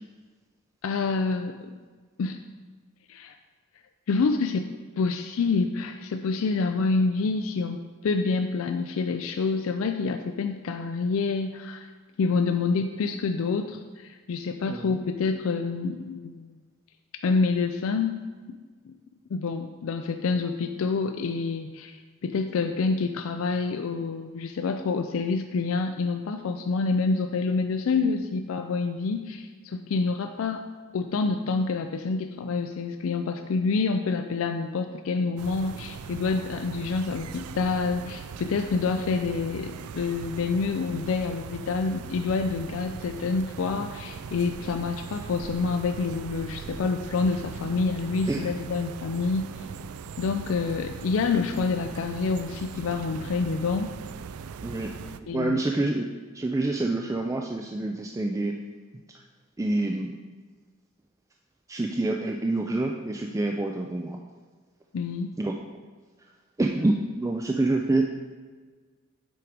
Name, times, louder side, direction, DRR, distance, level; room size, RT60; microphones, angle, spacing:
voice 1, 0.8-1.7 2.2-2.4 3.1-3.4 4.1-11.9 12.2-16.6 17.2-18.1 18.5-18.6 19.3-22.0 22.2-30.6 30.9-49.7 50.2-53.9 55.3-55.6 64.9-65.3, left 4 dB, 70° left, 7 dB, 0.4 m, -27 dB
sound 1, 35.4-55.2, right 6 dB, 90° right, 0.4 m, -40 dB
voice 2, 54.6-54.9 55.2-56.1 56.3-58.5 59.6-60.1 61.7-64.2 65.4-65.5 66.6-68.1, right 2 dB, 15° right, 2 dB, 0.3 m, -27 dB
7.7 x 4.7 x 5.0 m, 1.5 s
head